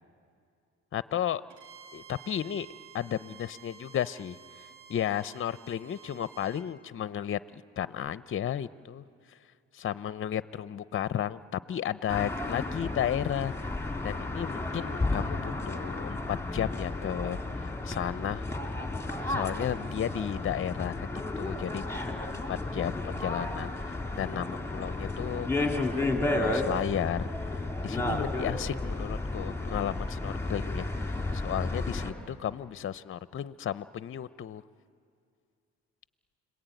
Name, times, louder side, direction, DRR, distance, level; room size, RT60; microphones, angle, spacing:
voice 1, 0.9-1.4 1.9-2.7 2.9-9.0 9.7-13.5 14.0-18.4 19.3-25.7 26.3-34.6, left 10 dB, 45° left, 15 dB, 0.6 m, -34 dB
Bowed string instrument, 1.5-6.7, right 7 dB, 75° right, 2.4 m, -52 dB
sound 1, 12.1-32.1, left 2 dB, 10° left, 2.5 m, -32 dB
29.5 x 21.0 x 9.2 m, 2.3 s
cardioid pair, 90°, 30 cm